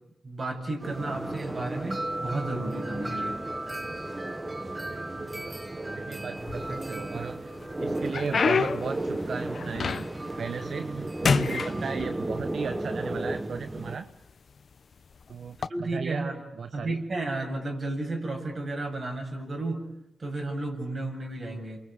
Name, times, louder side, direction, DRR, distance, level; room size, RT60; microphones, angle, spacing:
voice 1, 0.2-3.4 15.7-16.4 16.7-19.8 20.2-21.8, right 2 dB, 50° right, 3 dB, 7.4 m, -33 dB
sound 1, 0.8-14.0, right 1 dB, 25° right, 1.5 m, -34 dB
voice 2, 4.9-5.3 5.9-7.5 7.8-10.1 10.4-14.1 15.3-16.3 16.6-17.0, right 6 dB, 70° right, 10 dB, 1.0 m, -36 dB
sound 2, 6.4-7.1 7.6-10.3 10.7-11.0 11.2-12.5 13.3-13.4 14.1-14.3 15.5-15.7, left 5 dB, 65° left, 1.0 m, -28 dB
28.5 x 23.5 x 8.6 m, 0.90 s
cardioid pair, 50°, 0 cm